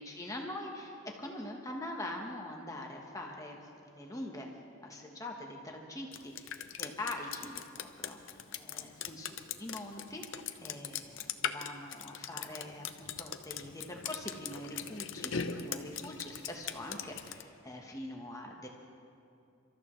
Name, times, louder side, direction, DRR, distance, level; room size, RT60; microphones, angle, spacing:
voice 1, 0.0-4.5 4.8-18.7, left 1 dB, 15° left, 0 dB, 1.2 m, -43 dB
Drip, 6.1-17.4, left 8 dB, 70° left, 0.7 m, -40 dB
29.0 x 13.5 x 3.2 m, 2.6 s
head